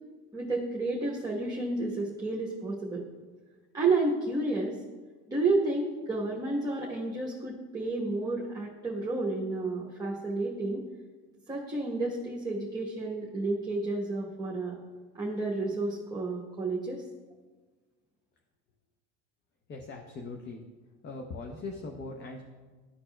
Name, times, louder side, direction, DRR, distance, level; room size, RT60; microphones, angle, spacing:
voice 1, 0.3-3.0 3.7-4.8 5.3-10.8 11.5-14.8 15.1-17.0, right 2 dB, 10° right, -4 dB, 1.0 m, -31 dB
voice 2, 19.7-20.6 21.0-22.4, left 3 dB, 30° left, 3 dB, 0.7 m, -40 dB
12.5 x 4.2 x 2.2 m, 1.4 s
supercardioid pair, 90°, 36 cm